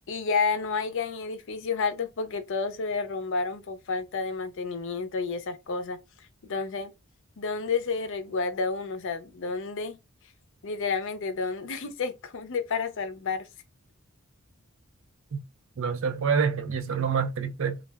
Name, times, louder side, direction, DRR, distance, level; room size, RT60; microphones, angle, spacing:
voice 1, 0.1-6.0 6.4-6.9 7.4-10.0 10.6-13.5, left 4 dB, 65° left, 0.5 m, -30 dB
voice 2, 15.8-17.8, right 6 dB, 65° right, 0.5 m, -27 dB
2.3 x 2.1 x 3.3 m
head